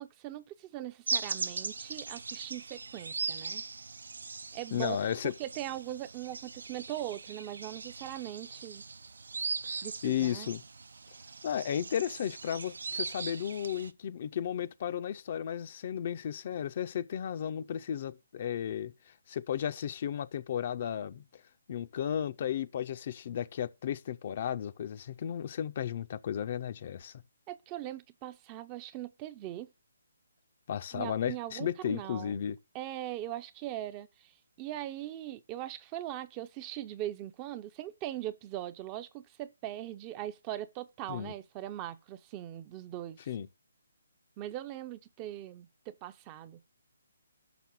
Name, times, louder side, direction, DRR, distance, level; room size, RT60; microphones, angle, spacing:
voice 1, 0.0-3.6 4.5-5.0 5.2-8.8 9.8-10.5 27.5-29.7 30.9-32.4 32.7-34.3 34.6-43.2 44.4-46.6, right 13 dB, 25° right, 0.5 m, -40 dB
sound 1, 1.1-13.9, right 4 dB, 70° right, 0.5 m, -39 dB
voice 2, 4.7-5.3 9.6-10.6 11.4-18.9 19.3-21.2 21.7-27.1 30.7-32.6 41.1-41.3 43.3-43.5, left 9 dB, 45° left, 0.5 m, -34 dB
6.0 x 5.7 x 7.0 m
figure-of-eight pair, 145°, 0 cm